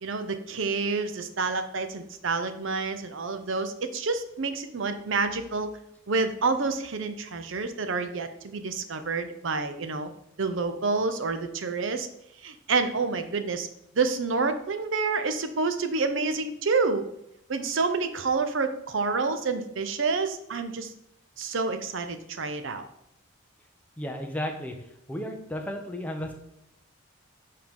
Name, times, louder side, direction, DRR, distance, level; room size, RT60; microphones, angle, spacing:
voice 1, 0.0-5.7 6.1-10.1 10.4-12.1 12.4-13.7 13.9-17.0 17.5-20.9 21.4-22.8, right 4 dB, 65° right, 9 dB, 0.6 m, -28 dB
voice 2, 24.0-24.7 25.1-26.3, equal, 5° left, 2 dB, 0.7 m, -33 dB
7.1 x 4.6 x 3.6 m, 0.80 s
head